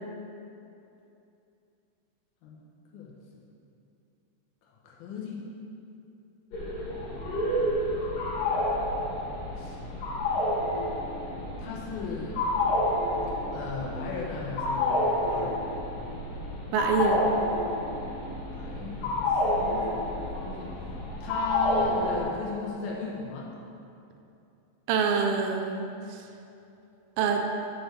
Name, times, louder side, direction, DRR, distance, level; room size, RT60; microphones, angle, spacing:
voice 1, 2.9-3.4 4.6-5.5 9.6-9.8 11.6-12.4 13.5-15.7 18.5-20.8 21.2-23.5, left 4 dB, 75° left, -4 dB, 1.9 m, -37 dB
sound 1, 6.5-22.2, left 1 dB, 55° left, 3.0 m, -29 dB
voice 2, 16.7-17.4 24.9-26.2 27.2-27.4, right 5 dB, 80° right, 3 dB, 2.6 m, -26 dB
6.8 x 4.2 x 6.6 m, 2.7 s
omnidirectional pair, 5.2 m